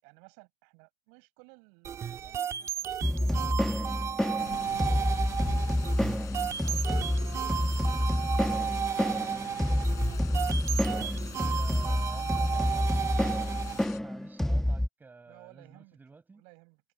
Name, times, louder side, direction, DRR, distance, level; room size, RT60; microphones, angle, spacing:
voice 1, 0.0-3.9 4.4-5.1 6.1-7.9 8.3-8.9 9.4-10.5 11.7-13.1 15.3-16.0 16.3-16.8, right 40 dB or more, 70° right, 6.7 m, -57 dB
sound 1, 1.8-13.8, right 9 dB, 50° right, 2.2 m, -34 dB
sound 2, 3.0-14.9, left 1 dB, 5° left, 1.4 m, -28 dB
sound 3, 4.4-14.0, left 13 dB, 60° left, 6.6 m, -47 dB
voice 2, 10.9-12.9 14.0-16.4, right 4 dB, 30° right, 6.8 m, -50 dB
figure-of-eight pair, 40°, 6 cm